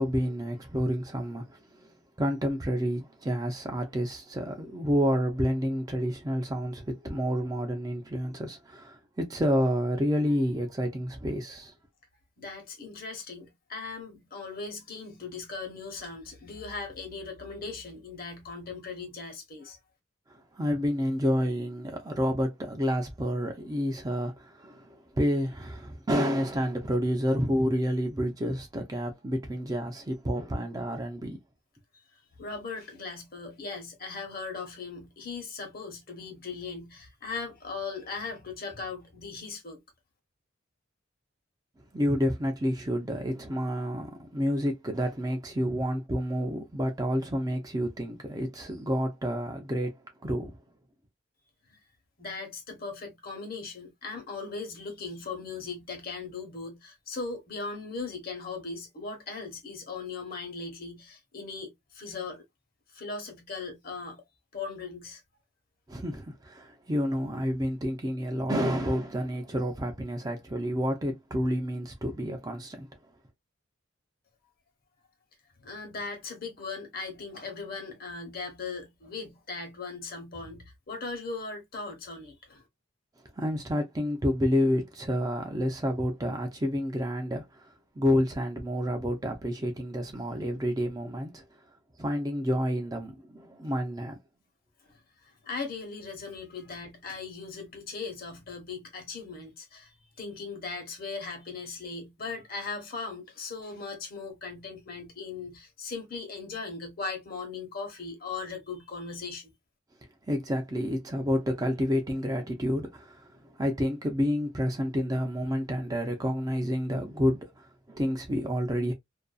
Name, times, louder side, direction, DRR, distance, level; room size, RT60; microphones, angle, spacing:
voice 1, 0.0-11.7 20.3-31.4 41.9-50.6 65.9-72.9 83.3-91.4 92.0-94.2 110.3-118.9, equal, 20° right, 0.5 m, -29 dB
voice 2, 12.4-19.8 32.1-39.8 51.7-51.8 52.2-62.4 62.9-64.2 64.5-65.2 75.6-82.6 94.8-109.5, left 4 dB, 50° left, 1.0 m, -39 dB
2.5 x 2.3 x 2.3 m
head